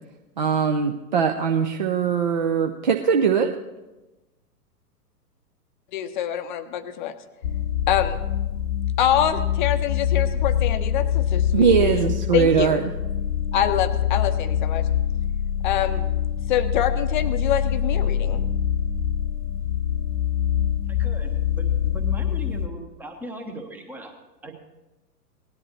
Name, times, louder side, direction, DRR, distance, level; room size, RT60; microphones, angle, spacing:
voice 1, 0.4-3.5 11.5-12.8, right 7 dB, 30° right, 3 dB, 0.4 m, -21 dB
voice 2, 5.9-7.1 7.9-8.2 9.0-12.8 13.5-14.9 15.6-16.1 16.5-18.4, left 10 dB, 30° left, 10 dB, 0.7 m, -25 dB
sound 1, 7.4-22.7, left 9 dB, 70° left, 0.8 m, -24 dB
voice 3, 20.9-24.1 24.4-24.5, right 2 dB, 5° right, 4 dB, 0.8 m, -38 dB
18.0 x 10.5 x 3.1 m, 1.1 s
figure-of-eight pair, 110°, 49 cm